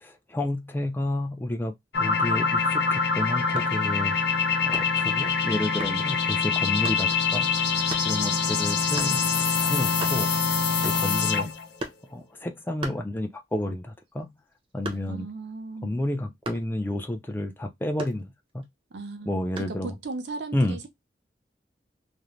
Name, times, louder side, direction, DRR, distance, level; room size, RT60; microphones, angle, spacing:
voice 1, 0.0-1.7 2.0-4.2 4.7-7.5 8.1-10.3 10.8-11.5 12.1-14.3 14.7-15.3 15.8-18.6 19.3-20.0 20.5-20.8, left 1 dB, 10° left, 0.3 m, -30 dB
sound 1, 1.9-11.6, left 5 dB, 70° left, 0.6 m, -25 dB
sound 2, 3.5-3.8 4.7-5.1 5.8-6.0 6.8-7.1 7.9-8.1 9.0-9.2 9.6-9.7 9.9-10.4 10.8-11.2 11.8-12.1 12.8-13.6 13.9-15.3 16.4-16.8 18.0-18.7 19.6-19.8, right 1 dB, 30° right, 0.6 m, -38 dB
voice 2, 15.1-16.0 18.9-20.9, right 3 dB, 75° right, 0.6 m, -37 dB
2.5 x 2.0 x 3.0 m
head